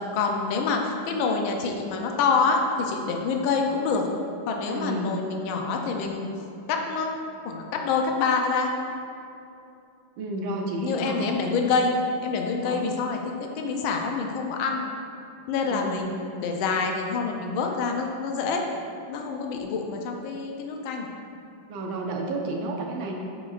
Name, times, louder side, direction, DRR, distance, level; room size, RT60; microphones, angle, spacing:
voice 1, 0.1-4.1 4.5-6.3 6.7-7.2 7.4-8.7 10.8-11.9 12.2-14.8 15.5-18.6 19.1-21.1, left 4 dB, 85° left, 2 dB, 1.4 m, -26 dB
voice 2, 4.7-5.1 10.2-11.2 12.6-12.9 15.6-16.0 21.7-23.2, right 2 dB, 85° right, 1 dB, 1.5 m, -31 dB
9.6 x 5.0 x 2.4 m, 2.7 s
omnidirectional pair, 2.1 m